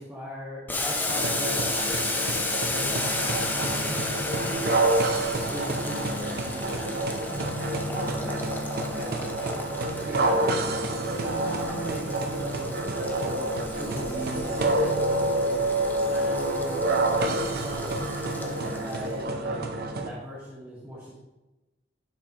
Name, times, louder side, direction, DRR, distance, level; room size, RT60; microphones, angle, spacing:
voice 1, 0.0-1.8 2.6-4.8 5.5-7.2 7.8-8.3 8.8-13.5 13.8-15.7 16.1-18.0 18.3-19.6 20.0-21.1, equal, 15° right, -9 dB, 1.5 m, -39 dB
Boiling, 0.7-19.1, left 2 dB, 10° left, 0.7 m, -34 dB
sound 1, 1.1-20.1, right 2 dB, 55° right, 0.7 m, -28 dB
sound 2, 2.8-20.1, equal, 60° left, 1.4 m, -40 dB
10.5 x 5.5 x 3.0 m, 1.0 s
head